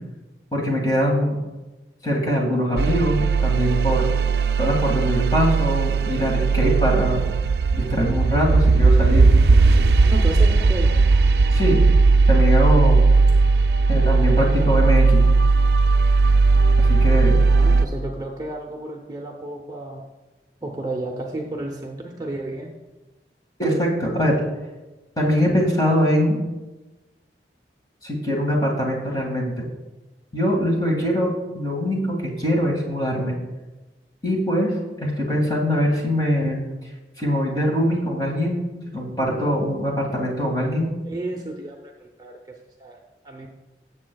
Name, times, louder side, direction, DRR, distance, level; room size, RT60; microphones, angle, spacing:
voice 1, 0.5-1.4 2.0-4.1 4.6-7.2 7.7-9.3 11.5-11.8 12.3-13.0 13.9-15.3 16.8-17.4 23.6-24.3 25.2-26.4 28.0-29.6 30.3-31.3 31.5-33.4 34.2-36.6 37.2-38.7 38.9-40.9, equal, 25° left, -2 dB, 1.9 m, -22 dB
sound 1, 2.8-17.8, right 3 dB, 65° right, 0.4 m, -17 dB
voice 2, 10.0-10.9 13.4-13.5 17.5-20.0 20.6-22.7 41.1-43.0 43.2-43.5, right 2 dB, 20° right, 0 dB, 0.7 m, -32 dB
17.0 x 7.6 x 2.3 m, 1.1 s
head